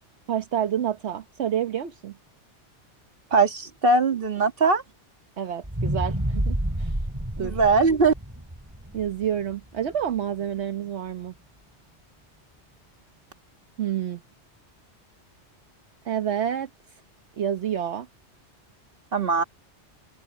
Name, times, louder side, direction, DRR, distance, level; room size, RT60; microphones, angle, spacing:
voice 1, 0.3-2.2 5.4-7.0 7.4-7.6 8.9-11.3 13.8-14.2 16.0-17.0 17.4-18.1, right 9 dB, 70° right, 1.2 m, -29 dB
voice 2, 3.3-4.8 7.4-8.1 19.1-19.4, right 4 dB, 50° right, 2.0 m, -20 dB
sound 1, 5.6-9.9 10.4-10.5, right 1 dB, 15° right, 2.8 m, -29 dB
open air
omnidirectional pair, 1.2 m